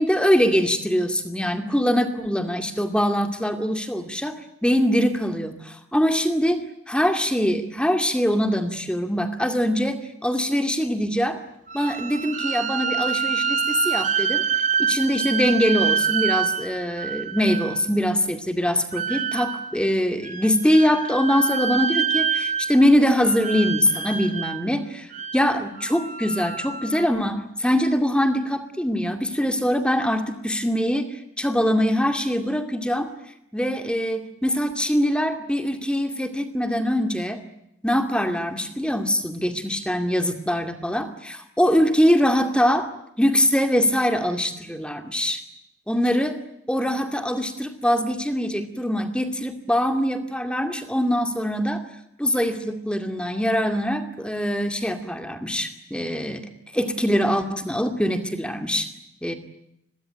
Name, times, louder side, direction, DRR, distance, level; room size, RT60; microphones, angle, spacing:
voice 1, 0.0-4.3 4.6-6.6 6.9-11.4 11.7-14.4 14.8-33.1 33.5-37.4 37.8-42.9 43.2-45.4 45.9-46.3 46.7-51.8 52.2-56.5 56.7-58.9 59.2-59.3, equal, 5° left, 7 dB, 2.3 m, -23 dB
sound 1, 11.7-17.9 18.9-19.8 20.2-22.9 23.1-24.6 25.1-27.1, right 7 dB, 35° right, 1.8 m, -26 dB
29.0 x 22.5 x 9.1 m, 0.78 s
head